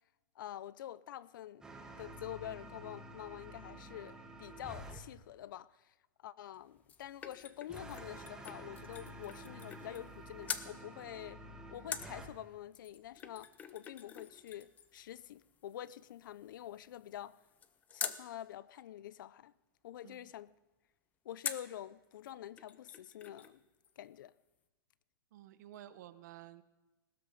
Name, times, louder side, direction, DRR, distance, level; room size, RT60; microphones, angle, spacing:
voice 1, 0.4-1.7 2.0-5.9 6.2-11.4 11.7-17.4 17.9-19.5 19.8-20.5 21.2-23.6 24.0-24.3, left 11 dB, 60° left, 0.5 m, -47 dB
sound 1, 1.6-5.0 7.7-12.3, right 1 dB, 5° right, 1.2 m, -50 dB
sound 2, 6.5-10.2 10.4-10.7 11.9-18.2 21.4-21.8 22.3-22.4 22.6-23.6 23.8-23.9, left 7 dB, 15° left, 0.5 m, -46 dB
voice 2, 25.3-26.6, right 12 dB, 50° right, 0.9 m, -53 dB
18.5 x 13.0 x 5.3 m
hypercardioid pair, 160°, 12 cm